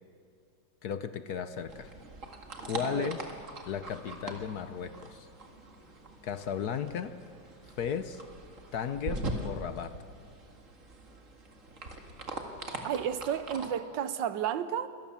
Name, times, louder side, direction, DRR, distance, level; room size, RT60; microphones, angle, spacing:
voice 1, 0.8-1.9 2.6-3.2 3.7-5.3 6.2-7.1 7.8-8.2 8.7-9.9, left 8 dB, 60° left, 1.2 m, -35 dB
sound 1, 1.7-13.7, right 2 dB, 40° right, 2.2 m, -42 dB
voice 2, 12.8-14.9, right 9 dB, 70° right, 1.5 m, -32 dB
26.0 x 18.0 x 7.1 m
omnidirectional pair, 2.1 m